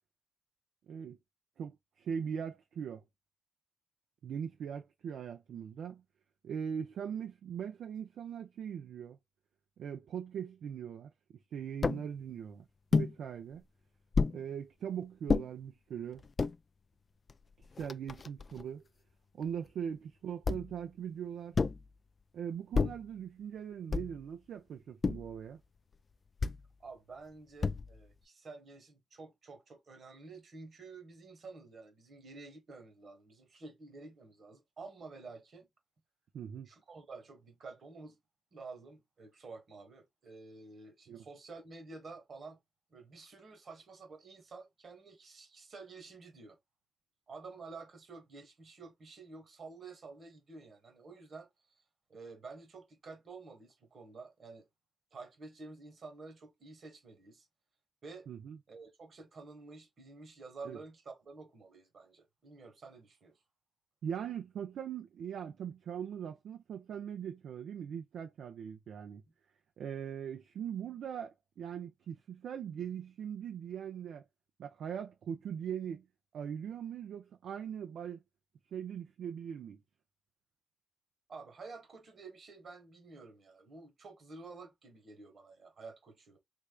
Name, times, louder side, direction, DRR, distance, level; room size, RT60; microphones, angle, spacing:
voice 1, 0.9-1.2 1.6-3.0 4.2-6.0 6.4-9.2 9.8-11.1 11.5-12.6 12.9-13.6 14.3-16.2 17.8-18.8 19.3-21.6 22.3-25.6 36.3-36.7 41.1-41.2 58.3-58.6 60.6-60.8 64.0-69.2 69.8-74.2 74.6-76.1 76.3-78.2 78.7-79.8, right 8 dB, 75° right, 0.4 m, -40 dB
sound 1, 11.8-12.1 12.9-13.1 14.1-14.4 15.3-15.5 16.2-16.6 17.3-17.4 17.6-18.6 20.4-20.8 21.5-21.9 22.7-23.1 23.9-24.3 25.0-25.4 26.4-26.7 27.6-28.1, left 4 dB, 45° left, 0.3 m, -31 dB
voice 2, 26.8-35.7 36.7-38.2 38.5-42.6 42.9-46.6 47.3-51.5 52.1-54.7 55.1-57.5 58.0-58.3 58.7-63.4 81.3-86.4, right 3 dB, 60° right, 1.3 m, -50 dB
3.4 x 3.2 x 2.2 m
cardioid pair, 60°, 0 cm